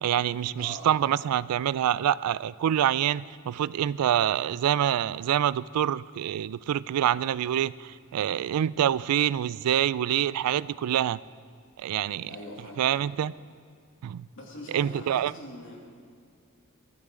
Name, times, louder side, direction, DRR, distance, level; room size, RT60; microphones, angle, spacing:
voice 1, 0.0-11.2 11.8-12.3 12.8-13.3 14.0-14.3 14.7-15.3, right 10 dB, 85° right, 20 dB, 0.3 m, -26 dB
voice 2, 0.6-0.9 12.2-13.0 14.3-15.8, left 1 dB, 60° left, -2 dB, 2.7 m, -43 dB
19.5 x 13.0 x 3.8 m, 2.1 s
head